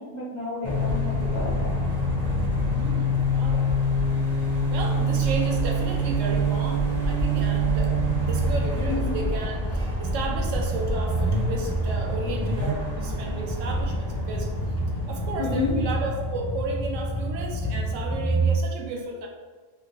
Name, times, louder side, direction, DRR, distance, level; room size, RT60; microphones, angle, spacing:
voice 1, 0.0-1.7 8.9-9.2 15.4-15.8, left 3 dB, 40° left, -8 dB, 1.0 m, -30 dB
sound 1, 0.6-18.6, right 1 dB, 15° left, 0.6 m, -25 dB
voice 2, 2.5-3.7 4.7-8.0 8.3-14.5 15.1-19.3, right 2 dB, 80° right, 0 dB, 0.9 m, -33 dB
2.8 x 2.8 x 3.2 m, 1.4 s
omnidirectional pair, 1.3 m